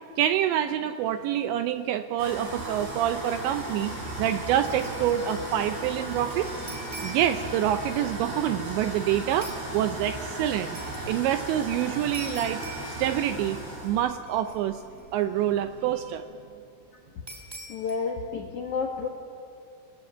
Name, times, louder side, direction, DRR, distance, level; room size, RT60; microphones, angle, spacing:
voice 1, 0.2-3.9 4.2-6.5 7.0-10.8 11.1-12.6 13.0-13.6 13.8-14.8 15.1-16.3, right 11 dB, 80° right, 9 dB, 2.6 m, -26 dB
sound 1, 2.2-16.1, right 1 dB, 50° right, 8.3 m, -36 dB
sound 2, 3.8-4.0 4.3-5.6 5.8-7.5 9.4-9.7 10.7-11.1 12.1-13.6 13.8-13.9 14.3-15.0 17.3-18.0, right 1 dB, 5° right, 2.4 m, -44 dB
voice 2, 17.7-19.1, left 5 dB, 70° left, 1 dB, 1.8 m, -30 dB
28.5 x 19.5 x 8.0 m, 2.5 s
omnidirectional pair, 5.8 m